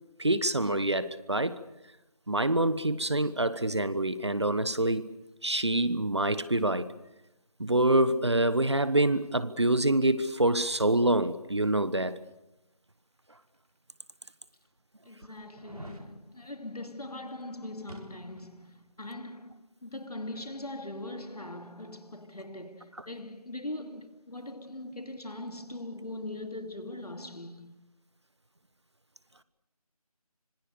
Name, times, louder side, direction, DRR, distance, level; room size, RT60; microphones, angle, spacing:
voice 1, 0.2-1.6 2.3-5.1 5.4-6.9 7.6-12.2, right 1 dB, 45° right, 1.2 m, -26 dB
sound 1, 13.5-13.6 14.3-14.4 15.5-16.1 17.9-18.6 18.9-19.0, right 1 dB, 75° right, 4.8 m, -47 dB
voice 2, 15.0-27.8, left 1 dB, 80° left, 2.8 m, -41 dB
26.0 x 22.0 x 6.8 m
figure-of-eight pair, 175°, 20 cm